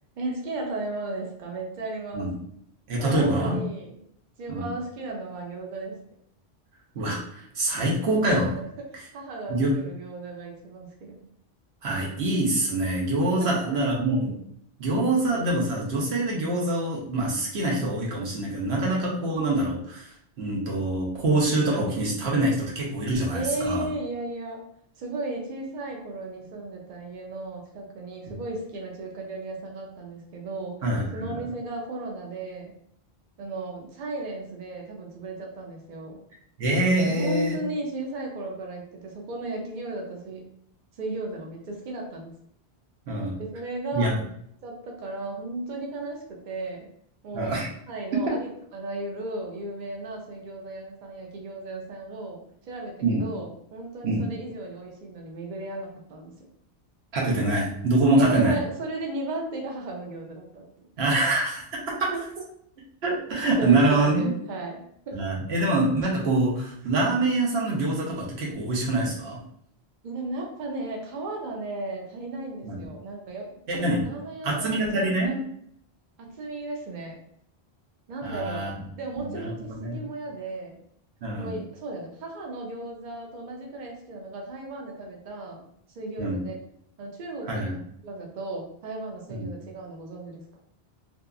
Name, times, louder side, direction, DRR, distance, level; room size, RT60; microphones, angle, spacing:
voice 1, 0.2-2.3 3.0-4.0 4.4-6.0 9.1-11.2 13.4-13.8 23.3-24.6 25.0-30.8 31.1-32.7 33.4-36.2 37.0-40.4 41.0-42.3 43.4-44.1 44.6-46.9 47.2-47.5 47.9-56.3 58.2-60.6 62.1-62.2 63.6-65.2 70.0-73.5 74.0-75.3 76.2-77.2 78.1-78.7 79.0-80.8 81.4-85.7 86.0-86.5 87.0-87.7 88.0-90.4, right 2 dB, 55° right, 0 dB, 0.6 m, -35 dB
voice 2, 2.9-3.6 4.5-4.7 6.9-8.6 9.5-9.7 11.8-14.3 14.8-23.9 30.8-31.4 36.6-37.6 43.1-43.4 43.9-44.1 47.3-47.7 48.1-48.3 53.0-53.2 54.0-54.3 57.1-58.5 61.0-62.1 63.0-64.3 65.1-69.4 72.6-72.8 73.7-74.0 74.4-75.4 78.2-78.7 79.2-80.0 81.2-81.5 86.2-86.4 87.4-87.7 89.3-89.5, right 2 dB, 80° right, -3 dB, 1.0 m, -25 dB
2.8 x 2.3 x 2.3 m, 0.69 s
omnidirectional pair, 1.1 m